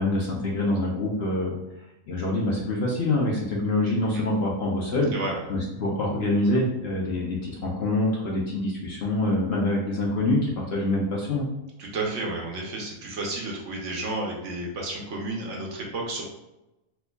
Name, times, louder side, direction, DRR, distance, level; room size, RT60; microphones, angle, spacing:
voice 1, 0.0-1.6 2.1-5.1 5.5-11.5, left 2 dB, 55° left, -3 dB, 0.8 m, -25 dB
voice 2, 5.1-5.5 11.8-16.3, right 2 dB, 60° right, -1 dB, 1.0 m, -32 dB
4.3 x 2.6 x 2.2 m, 0.94 s
omnidirectional pair, 1.5 m